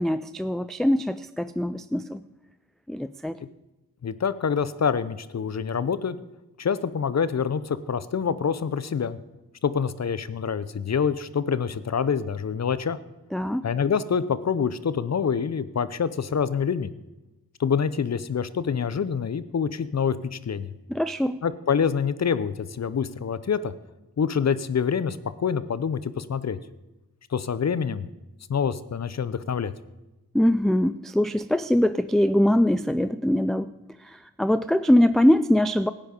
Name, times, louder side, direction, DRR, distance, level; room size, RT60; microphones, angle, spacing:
voice 1, 0.0-2.2 2.9-3.4 13.3-13.6 20.9-21.4 30.3-33.7 34.0-35.9, left 1 dB, ahead, 12 dB, 0.3 m, -22 dB
voice 2, 4.0-6.2 6.6-9.2 9.6-13.0 13.6-16.9 17.6-20.7 21.4-23.7 24.2-26.6 27.3-28.0 28.5-29.7, left 6 dB, 45° left, 15 dB, 0.7 m, -26 dB
12.5 x 9.1 x 5.2 m, 1.0 s
cardioid pair, 50°, 36 cm